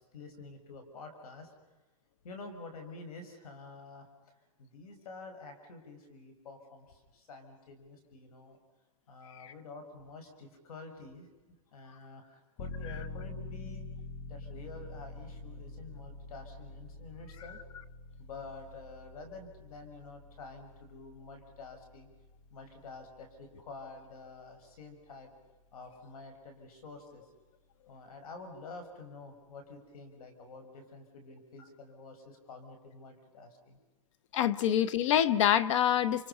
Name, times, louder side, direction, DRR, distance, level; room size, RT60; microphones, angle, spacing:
voice 1, 0.1-1.5 2.2-4.1 4.6-8.6 9.1-13.9 14.3-17.6 18.2-22.1 22.5-25.3 25.7-27.2 27.9-33.8, left 3 dB, 70° left, 6 dB, 5.8 m, -49 dB
sound 1, 12.6-25.1 25.4-25.5, left 3 dB, 25° left, 1.0 m, -46 dB
voice 2, 34.3-36.3, left 10 dB, 50° left, 19 dB, 0.8 m, -26 dB
30.0 x 29.0 x 5.6 m, 1.2 s
hypercardioid pair, 155°, 20 cm